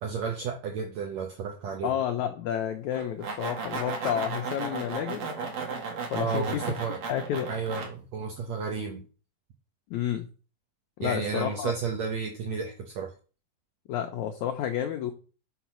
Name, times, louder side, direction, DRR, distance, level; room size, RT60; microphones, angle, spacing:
voice 1, 0.0-1.9 6.1-7.0 7.5-9.0 11.0-13.1, right 5 dB, 80° right, 2 dB, 1.5 m, -32 dB
voice 2, 1.8-5.3 6.1-6.6 7.1-7.5 9.9-10.3 11.0-11.7 13.9-15.1, left 10 dB, 90° left, 5 dB, 1.6 m, -30 dB
sound 1, 2.9-7.9, right 4 dB, 55° right, 2.1 m, -35 dB
6.0 x 4.1 x 6.1 m, 0.37 s
omnidirectional pair, 4.1 m